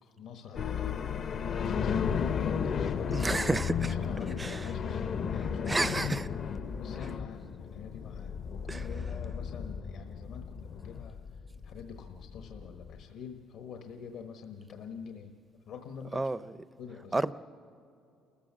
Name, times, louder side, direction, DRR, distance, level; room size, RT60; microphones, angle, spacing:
voice 1, 0.0-5.9 6.7-15.3 15.7-16.5 16.8-17.2, left 6 dB, 65° left, 1.1 m, -46 dB
sound 1, 0.6-13.0, left 7 dB, 45° left, 0.6 m, -34 dB
voice 2, 3.1-3.9 4.4-4.6 5.7-6.3 8.7-8.9 16.1-16.4 17.1-17.3, right 2 dB, 15° right, 0.5 m, -30 dB
29.5 x 14.0 x 7.4 m
cardioid pair, 140°, 0 cm